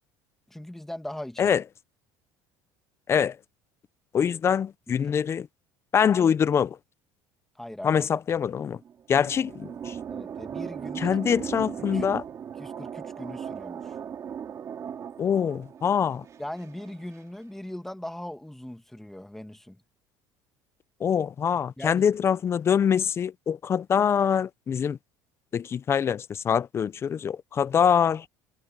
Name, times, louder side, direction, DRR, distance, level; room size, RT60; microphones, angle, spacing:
voice 1, 0.5-1.6 4.9-5.2 7.6-8.1 10.1-11.1 11.9-12.1 12.6-14.0 16.4-19.8 21.5-22.1, left 1 dB, 5° left, 1.7 m, -40 dB
voice 2, 4.1-5.5 5.9-6.8 7.8-8.8 9.1-10.0 11.0-12.2 15.2-16.2 21.0-25.0 25.5-28.2, left 8 dB, 30° left, 0.6 m, -24 dB
sound 1, 8.8-17.2, right 8 dB, 35° right, 2.8 m, -38 dB
cardioid pair, 135°, 9 cm